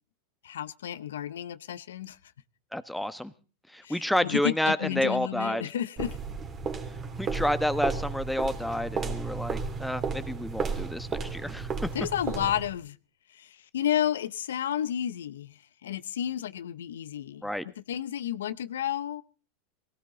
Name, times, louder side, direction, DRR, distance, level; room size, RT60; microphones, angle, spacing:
voice 1, 0.4-2.3 3.8-6.2 11.9-13.0 13.3-19.2, left 10 dB, 80° left, 15 dB, 0.7 m, -32 dB
voice 2, 2.7-3.3 3.7-5.6 7.2-11.7 17.4-17.6, left 1 dB, ahead, 12 dB, 1.1 m, -29 dB
sound 1, 6.0-12.8, right 5 dB, 30° right, 2.8 m, -33 dB
18.5 x 16.5 x 3.9 m, 0.36 s
hypercardioid pair, 100°, 0 cm